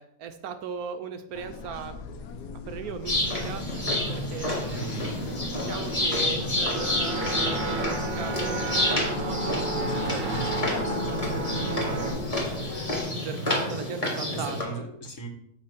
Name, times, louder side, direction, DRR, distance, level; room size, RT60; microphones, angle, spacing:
voice 1, 0.0-2.0 2.7-3.6 4.1-4.9 5.1-10.3 11.2-12.4 12.6-14.8, right 7 dB, 70° right, 8 dB, 1.0 m, -38 dB
sound 1, 1.3-13.0, left 4 dB, 85° left, 1.3 m, -40 dB
sound 2, 3.0-14.6, left 1 dB, 20° left, 1.6 m, -29 dB
voice 2, 4.7-5.3 10.5-12.1 14.3-15.3, right 1 dB, 55° left, 3 dB, 1.4 m, -38 dB
sound 3, 6.7-12.1, right 2 dB, 55° right, 1.2 m, -31 dB
7.8 x 3.2 x 5.8 m, 0.77 s
omnidirectional pair, 1.7 m